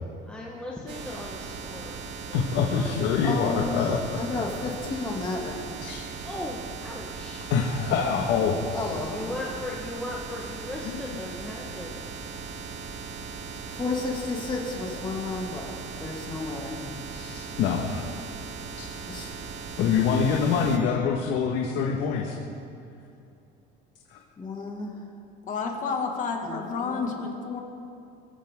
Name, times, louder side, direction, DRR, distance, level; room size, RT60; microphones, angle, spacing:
voice 1, 0.2-2.0 2.3-2.5 2.7-3.0 6.2-7.5 9.1-12.0, left 2 dB, 5° left, -4 dB, 1.4 m, -37 dB
sound 1, 0.9-20.8, right 5 dB, 65° right, 2.2 m, -38 dB
voice 2, 2.3-4.0 5.8-6.0 7.5-8.9 10.8-10.9 17.1-18.1 19.8-22.4 24.1-24.2, left 6 dB, 65° left, -1 dB, 1.7 m, -25 dB
voice 3, 3.2-3.9 4.1-5.7 8.7-9.3 13.7-17.1 17.5-17.7 19.1-19.4 24.4-25.1 26.4-27.2, left 3 dB, 20° left, -1 dB, 2.5 m, -33 dB
voice 4, 25.5-27.6, left 5 dB, 40° left, 1 dB, 2.2 m, -30 dB
24.5 x 14.5 x 3.8 m, 2.6 s
cardioid pair, 150°, 20 cm